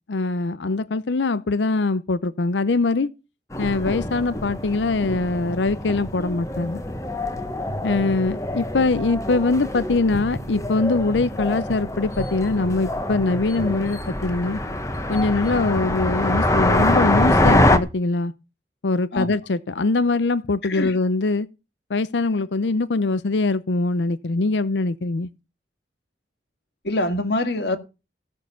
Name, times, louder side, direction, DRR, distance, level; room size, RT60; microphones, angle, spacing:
voice 1, 0.0-3.1 3.6-6.8 7.8-14.6 15.1-18.3 18.8-21.5 21.9-25.3, left 3 dB, 85° left, 0.6 m, -22 dB
sound 1, 3.5-17.8, left 1 dB, 20° left, 1.3 m, -24 dB
voice 2, 20.6-21.0 26.8-27.8, left 2 dB, 70° left, 1.8 m, -24 dB
16.0 x 6.5 x 7.0 m
head